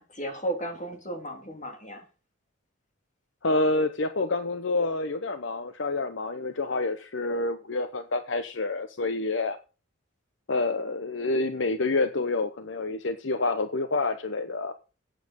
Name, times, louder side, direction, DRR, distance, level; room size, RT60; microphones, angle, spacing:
voice 1, 0.0-2.0, right 1 dB, 35° left, 3 dB, 3.1 m, -34 dB
voice 2, 3.4-9.6 10.5-14.7, left 3 dB, 65° left, 9 dB, 0.8 m, -28 dB
8.8 x 7.4 x 7.8 m, 0.34 s
head